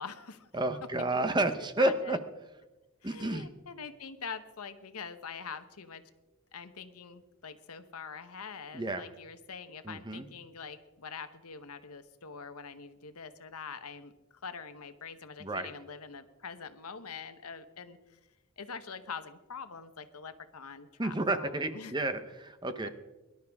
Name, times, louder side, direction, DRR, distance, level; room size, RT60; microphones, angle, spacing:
voice 1, 0.0-0.6 1.1-2.2 3.0-6.0 6.5-14.1 14.4-18.0 18.6-21.9, left 5 dB, 85° left, 10 dB, 1.1 m, -44 dB
voice 2, 0.5-2.2 3.0-3.5 8.7-9.0 9.8-10.3 15.4-15.7 21.0-22.9, right 2 dB, 20° right, 9 dB, 0.8 m, -31 dB
23.0 x 12.0 x 3.6 m, 1.1 s
head